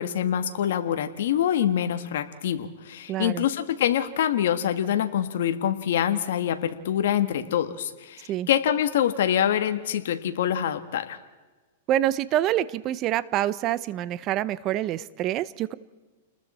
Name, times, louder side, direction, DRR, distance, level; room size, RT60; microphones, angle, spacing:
voice 1, 0.0-11.2, left 10 dB, 70° left, 8 dB, 1.6 m, -25 dB
voice 2, 3.1-3.4 8.3-8.5 11.9-15.7, right 13 dB, 35° right, 17 dB, 0.8 m, -26 dB
29.5 x 20.5 x 4.4 m, 1.3 s
hypercardioid pair, 140°, 0 cm